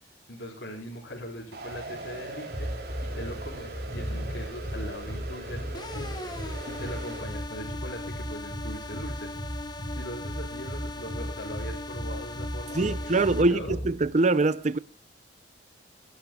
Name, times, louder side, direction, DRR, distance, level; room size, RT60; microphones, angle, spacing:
voice 1, 0.3-2.7 3.0-6.2 6.4-9.3 9.9-13.8, equal, 70° left, 4.4 m, -40 dB
sound 1, 1.5-14.1, equal, 50° left, 5.3 m, -37 dB
sound 2, 1.5-7.2, right 2 dB, 60° right, 3.5 m, -41 dB
sound 3, 5.7-13.4, left 2 dB, 25° left, 1.0 m, -40 dB
voice 2, 12.7-14.8, right 3 dB, 40° right, 0.6 m, -23 dB
23.0 x 12.0 x 2.4 m
head